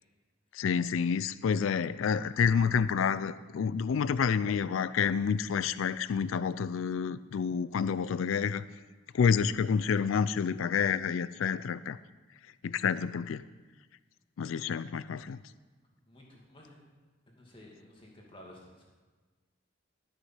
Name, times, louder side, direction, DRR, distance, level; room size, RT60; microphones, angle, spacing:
voice 1, 0.5-8.6 9.1-12.0 12.6-13.4 14.4-15.4, left 6 dB, 85° left, 16 dB, 0.4 m, -29 dB
voice 2, 16.1-16.8 17.3-18.8, left 1 dB, 25° left, -2 dB, 2.2 m, -53 dB
12.5 x 6.3 x 5.7 m, 1.4 s
head